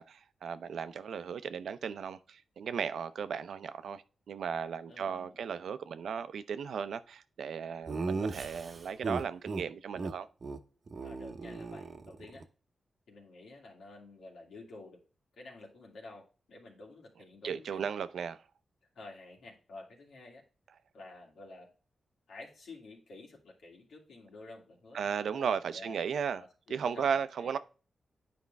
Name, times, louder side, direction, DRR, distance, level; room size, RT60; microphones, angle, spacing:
voice 1, 0.0-10.3 17.4-18.4 24.9-26.4 26.7-27.6, right 7 dB, 85° right, 0.6 m, -36 dB
voice 2, 4.9-5.4 11.0-12.4 13.1-15.0 15.4-17.9 18.9-20.4 20.9-21.7 22.3-26.0 26.4-27.6, left 2 dB, 90° left, 2.6 m, -51 dB
Laughter, 7.9-9.6 10.0-10.1 10.4-10.6 10.9-12.4, right 3 dB, 40° right, 0.8 m, -37 dB
9.8 x 5.1 x 3.4 m
wide cardioid pair, 115°, 0 cm